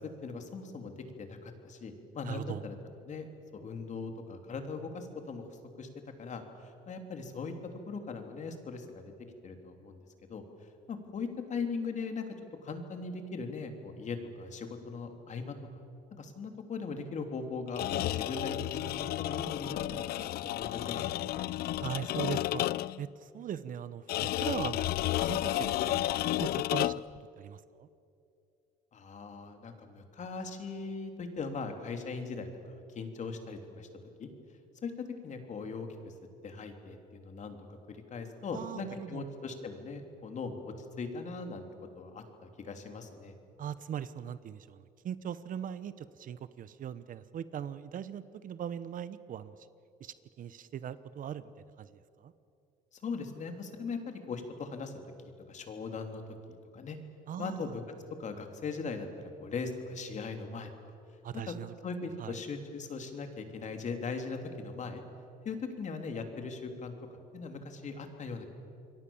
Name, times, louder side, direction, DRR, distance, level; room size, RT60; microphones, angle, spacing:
voice 1, 0.2-2.8 3.1-5.4 5.8-5.9 6.2-7.5 7.9-9.0 9.4-10.0 10.3-10.4 10.9-12.2 12.6-15.5 16.1-18.8 19.2-20.0 20.3-21.2 28.9-33.9 34.2-34.3 34.8-34.9 35.2-36.1 36.4-41.7 41.9-43.3 52.9-54.9 55.5-56.2 56.7-57.0 57.4-57.8 58.2-59.1 59.4-60.7 61.5-61.6 61.8-65.0 65.4-66.9 67.3-68.5, left 4 dB, 45° left, 5 dB, 3.2 m, -39 dB
voice 2, 2.2-2.7 21.8-22.7 23.0-26.1 26.4-27.0 27.4-27.9 38.5-39.2 43.6-49.5 50.0-51.4 51.8-51.9 52.2-52.3 57.3-57.8 61.2-61.7 62.2-62.4, right 9 dB, 55° right, 15 dB, 1.0 m, -40 dB
sound 1, 17.7-23.0 24.1-27.2, left 14 dB, 65° left, 0.5 m, -32 dB
28.0 x 22.5 x 7.2 m, 2.6 s
cardioid pair, 110°, 17 cm